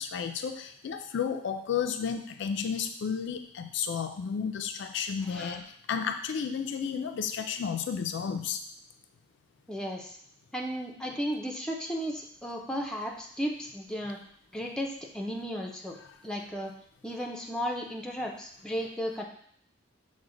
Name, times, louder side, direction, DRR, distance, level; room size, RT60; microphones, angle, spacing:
voice 1, 0.0-8.6, left 7 dB, 65° left, 7 dB, 0.3 m, -32 dB
voice 2, 5.3-5.6 9.7-10.2 10.5-14.2 14.5-16.0 16.2-16.7 17.0-19.2, equal, 5° left, 0 dB, 0.5 m, -34 dB
6.1 x 2.1 x 3.8 m, 0.63 s
head